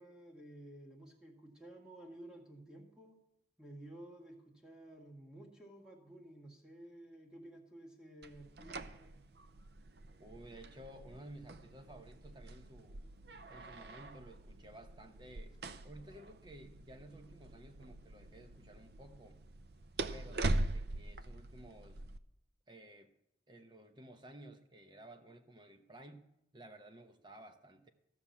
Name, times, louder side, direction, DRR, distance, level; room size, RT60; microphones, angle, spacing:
voice 1, 0.0-3.1 3.6-9.1, right 1 dB, 5° right, 1.9 m, -53 dB
sound 1, 8.2-22.2, right 2 dB, 65° right, 0.6 m, -43 dB
voice 2, 10.2-13.0 13.5-15.6 15.8-19.4 20.1-22.0 22.7-23.1 23.5-26.3 26.5-27.9, right 1 dB, 25° right, 1.0 m, -54 dB
15.0 x 6.1 x 7.2 m
head